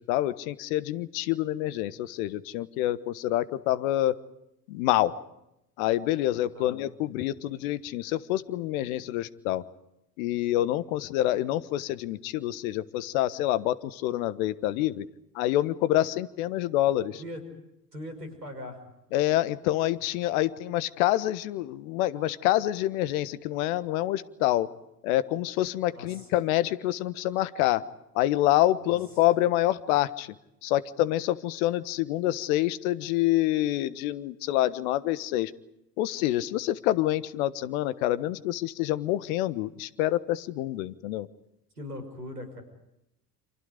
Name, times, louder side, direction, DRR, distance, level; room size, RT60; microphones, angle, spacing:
voice 1, 0.0-4.1 4.7-5.1 5.8-9.6 10.2-15.0 15.3-17.2 19.1-24.7 25.0-27.8 28.1-30.3 30.6-35.5 36.0-41.3, left 14 dB, 60° left, 15 dB, 1.4 m, -27 dB
voice 2, 17.9-18.8 25.9-26.3 28.8-29.0 41.8-42.6, left 1 dB, 85° right, 7 dB, 5.8 m, -40 dB
29.5 x 27.5 x 5.1 m, 0.85 s
figure-of-eight pair, 65°, 47 cm